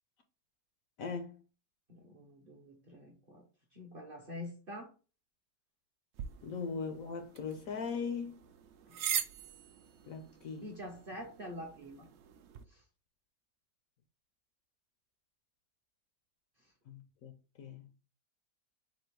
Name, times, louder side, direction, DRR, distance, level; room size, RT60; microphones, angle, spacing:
voice 1, 1.0-1.4 6.4-8.5 10.1-10.7 16.9-17.9, left 5 dB, 65° left, 0.9 m, -40 dB
voice 2, 1.9-3.4 3.7-4.9 8.9-9.0 10.6-12.1 12.7-12.8, left 1 dB, 45° right, 0.7 m, -46 dB
sound 1, 6.1-12.6, right 9 dB, 90° right, 0.6 m, -42 dB
4.2 x 2.7 x 4.5 m
omnidirectional pair, 1.8 m